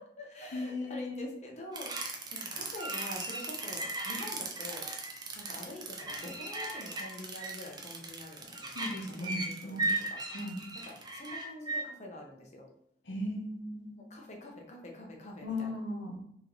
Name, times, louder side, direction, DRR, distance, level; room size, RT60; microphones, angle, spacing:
voice 1, 0.0-1.9 2.3-4.9 5.3-10.2 10.8-12.7 14.0-15.8, left 1 dB, 40° left, 0 dB, 0.8 m, -46 dB
voice 2, 0.5-1.3 8.7-9.9 10.3-10.6 13.1-14.0 15.4-16.2, left 1 dB, 85° left, 1 dB, 0.9 m, -37 dB
sound 1, 1.7-11.8, right 2 dB, 25° right, 0.5 m, -37 dB
3.1 x 3.0 x 3.8 m, 0.72 s
head